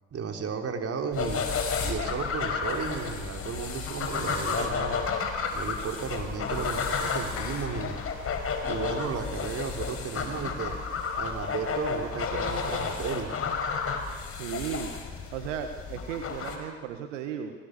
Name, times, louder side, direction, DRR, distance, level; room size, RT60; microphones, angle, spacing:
voice 1, 0.1-1.4 1.8-5.0 5.5-8.0 8.6-10.7 11.2-13.3, right 5 dB, 40° right, 4 dB, 3.8 m, -34 dB
sound 1, 1.1-16.6, left 5 dB, 35° left, 4.8 m, -32 dB
Clapping, 7.4-9.1, left 7 dB, 55° left, 4.1 m, -43 dB
voice 2, 14.3-17.5, right 8 dB, 75° right, 6 dB, 1.7 m, -36 dB
30.0 x 20.0 x 6.8 m, 1.5 s
hypercardioid pair, 80°, 37 cm